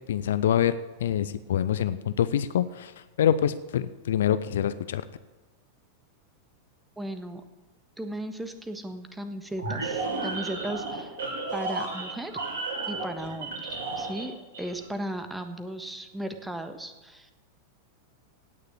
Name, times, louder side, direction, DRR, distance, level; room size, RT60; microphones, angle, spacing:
voice 1, 0.1-0.8 1.0-2.9 3.2-5.0, left 10 dB, 60° left, 14 dB, 0.6 m, -25 dB
voice 2, 7.0-7.4 8.0-11.1 11.5-12.3 12.9-13.7 14.0-17.3, right 1 dB, 5° right, 8 dB, 1.4 m, -36 dB
sound 1, 9.6-14.3 14.5-14.8, right 3 dB, 60° right, 3.2 m, -32 dB
17.0 x 6.7 x 8.5 m, 1.2 s
figure-of-eight pair, 90°, 0 cm